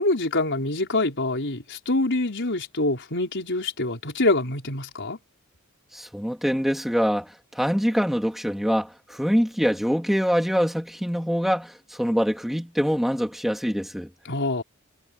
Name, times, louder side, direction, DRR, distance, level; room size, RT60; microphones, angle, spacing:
voice 1, 0.0-5.2 14.2-14.6, left 2 dB, 60° left, 5.1 m, -25 dB
voice 2, 5.9-14.1, equal, ahead, 3.5 m, -24 dB
head